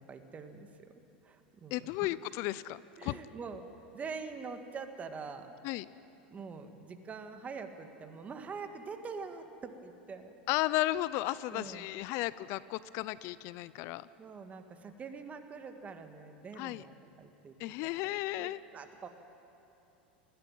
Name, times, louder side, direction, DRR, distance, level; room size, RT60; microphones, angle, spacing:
voice 1, 0.0-2.1 3.0-3.7 3.9-5.6 6.3-10.3 11.5-11.9 14.2-16.9 17.2-17.6 18.4-19.1, right 5 dB, 25° right, 7 dB, 1.8 m, -44 dB
voice 2, 1.7-3.2 5.6-5.9 10.5-14.1 16.6-16.8 17.6-18.6, left 16 dB, 55° left, 18 dB, 0.5 m, -34 dB
20.0 x 15.5 x 9.2 m, 2.9 s
hypercardioid pair, 100°, 5 cm